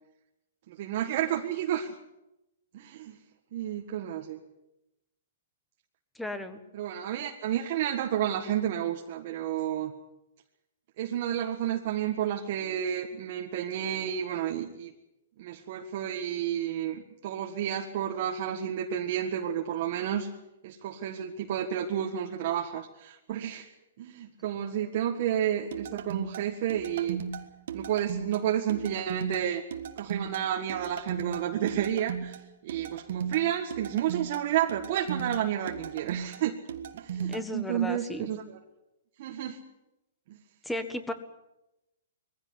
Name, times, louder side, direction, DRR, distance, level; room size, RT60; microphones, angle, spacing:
voice 1, 0.7-1.9 2.7-3.2 3.5-4.4 6.7-9.9 11.0-14.9 15.4-20.3 20.6-23.7 24.0-27.2 27.7-29.6 30.0-36.6 36.9-38.6 39.2-39.6 40.3-40.4, right 10 dB, 45° right, 2 dB, 1.6 m, -31 dB
voice 2, 6.1-6.6 37.2-38.3 40.6-41.1, left 1 dB, 5° left, 10 dB, 1.5 m, -35 dB
sound 1, 25.7-37.4, right 7 dB, 65° right, 1.6 m, -37 dB
21.0 x 15.5 x 9.7 m, 0.93 s
hypercardioid pair, 155°, 0 cm